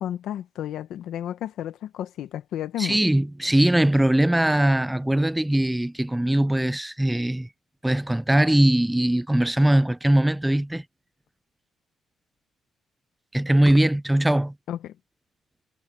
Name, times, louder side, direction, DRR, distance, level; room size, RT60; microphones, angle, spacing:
voice 1, 0.0-3.0 14.7-14.9, left 11 dB, 80° left, 1.0 m, -32 dB
voice 2, 2.8-7.5 7.8-10.8 13.3-14.5, right 1 dB, 5° right, 0.5 m, -21 dB
cardioid pair, 90°, 0 cm